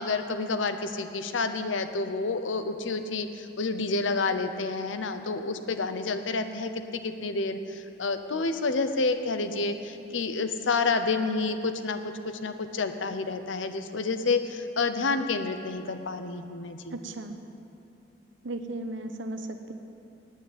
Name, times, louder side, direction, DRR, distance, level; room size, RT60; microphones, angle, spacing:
voice 1, 0.0-17.0, left 3 dB, 85° left, 9 dB, 0.7 m, -29 dB
voice 2, 16.9-17.4 18.4-19.7, right 2 dB, 85° right, 7 dB, 0.9 m, -35 dB
9.3 x 8.2 x 9.3 m, 2.7 s
head